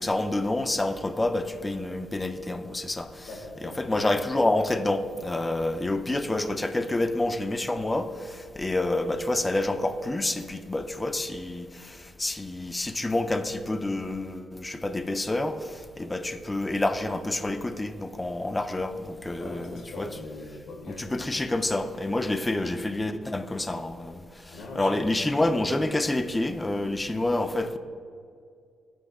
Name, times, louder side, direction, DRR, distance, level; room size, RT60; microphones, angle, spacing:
voice 1, 0.0-3.3 3.6-15.7 16.0-20.1 21.0-27.8, left 2 dB, 15° left, 10 dB, 0.3 m, -28 dB
voice 2, 3.3-4.3 19.4-21.3 24.5-24.9, left 2 dB, 85° left, 2 dB, 1.1 m, -41 dB
7.7 x 2.9 x 4.7 m, 2.3 s
cardioid pair, 90°, 0 cm